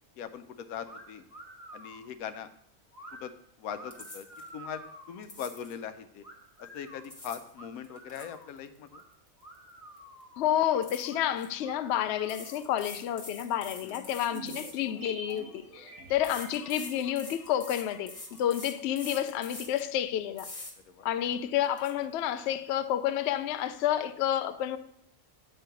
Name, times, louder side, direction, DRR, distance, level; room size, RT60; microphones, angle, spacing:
voice 1, 0.2-1.2 1.7-2.5 3.1-4.3 4.5-6.2 6.6-9.0 13.8-14.1 20.9-21.1 21.3-21.5, left 8 dB, 90° left, 1.1 m, -41 dB
sound 1, 0.8-1.0 1.3-2.1 2.9-3.2 3.7-5.2 6.2-7.0 7.5-8.5 8.9-9.0 9.4-10.4 11.0-11.2 11.6-12.7, right 1 dB, 10° left, 1.3 m, -49 dB
sound 2, 3.9-4.5 5.2-5.8 6.8-7.5 7.8-9.7 10.0-10.2 10.8-11.5 12.2-15.4 16.2-19.9 20.4-20.7 21.2-21.3 21.6-21.9, left 2 dB, 25° left, 1.1 m, -45 dB
voice 2, 10.4-20.5 21.0-24.8, left 11 dB, 65° left, 0.7 m, -30 dB
sound 3, 14.3-18.8 19.0-19.1, right 2 dB, 80° right, 1.9 m, -47 dB
8.6 x 4.6 x 5.0 m
omnidirectional pair, 1.5 m